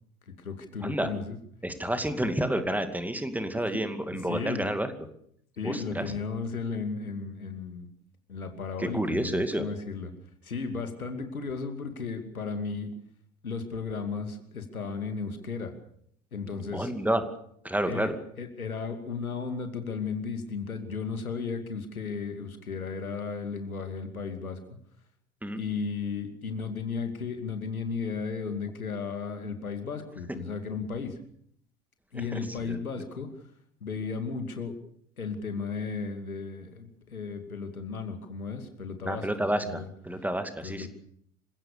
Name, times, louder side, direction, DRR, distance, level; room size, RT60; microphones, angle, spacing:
voice 1, 0.3-1.4 3.7-3.8 4.1-4.7 5.6-7.9 8.3-10.1 10.4-12.9 13.4-15.7 16.3-16.9 17.9-24.6 25.6-31.2 32.1-33.3 33.8-34.7 35.2-39.3 39.6-39.9 40.6-40.9, left 5 dB, 80° left, 6 dB, 2.7 m, -34 dB
voice 2, 1.6-4.9 5.6-6.1 8.8-9.6 16.7-17.3 17.6-18.1 25.4-25.6 32.3-32.4 32.7-32.8 39.0-40.9, right 1 dB, 5° right, 8 dB, 2.4 m, -29 dB
27.0 x 16.5 x 6.9 m, 0.67 s
figure-of-eight pair, 75°, 42 cm